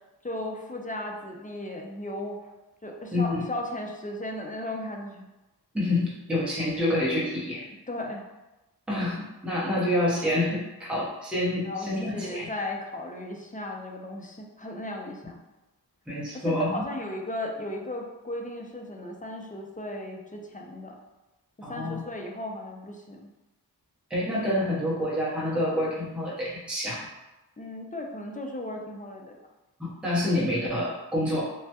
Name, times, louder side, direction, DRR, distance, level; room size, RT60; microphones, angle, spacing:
voice 1, 0.2-2.4 2.8-5.2 7.9-8.2 11.6-15.4 16.3-21.0 21.7-23.3 27.6-29.4, left 1 dB, 20° left, 1 dB, 0.4 m, -36 dB
voice 2, 3.1-3.4 5.7-7.7 8.9-12.5 16.1-16.8 21.6-22.0 24.1-27.1 29.8-31.5, left 1 dB, 5° right, -7 dB, 0.7 m, -27 dB
3.3 x 2.1 x 2.8 m, 1.0 s
wide cardioid pair, 70°, 40 cm